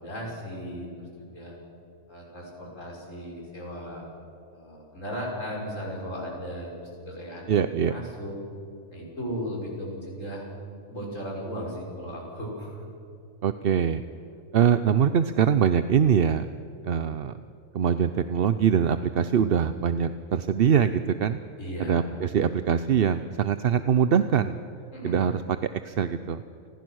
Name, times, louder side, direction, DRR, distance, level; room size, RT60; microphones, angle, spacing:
voice 1, 0.0-1.6 2.1-4.1 4.5-7.5 7.9-8.4 8.9-10.5 10.9-12.8 21.6-22.1 24.9-25.2, equal, 65° left, -2 dB, 6.5 m, -36 dB
voice 2, 7.5-7.9 13.4-14.0 14.5-16.5 16.8-17.3 17.7-21.4 21.9-24.6 25.0-25.4 25.8-26.4, right 8 dB, 55° right, 11 dB, 0.8 m, -23 dB
30.0 x 20.0 x 6.4 m, 2.6 s
omnidirectional pair, 1.4 m